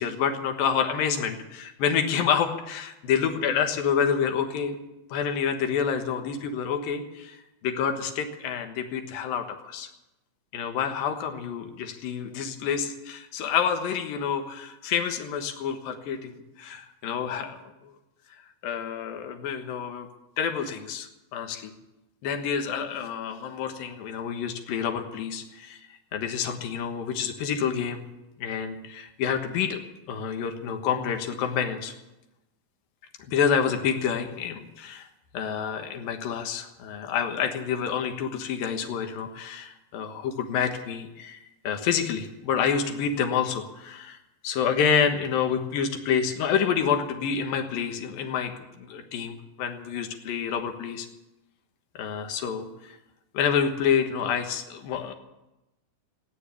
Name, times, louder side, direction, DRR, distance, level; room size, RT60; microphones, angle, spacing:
voice 1, 0.0-4.8 5.1-7.4 7.6-9.9 10.5-17.6 18.6-20.1 20.4-21.7 22.2-25.8 26.1-28.0 28.4-29.8 30.1-31.9 33.3-35.1 35.3-41.4 41.6-44.2 44.4-48.5 48.8-51.1 52.0-53.0 53.3-55.1, left 7 dB, 75° left, 6 dB, 3.1 m, -28 dB
16.5 x 10.5 x 8.5 m, 0.98 s
omnidirectional pair, 4.2 m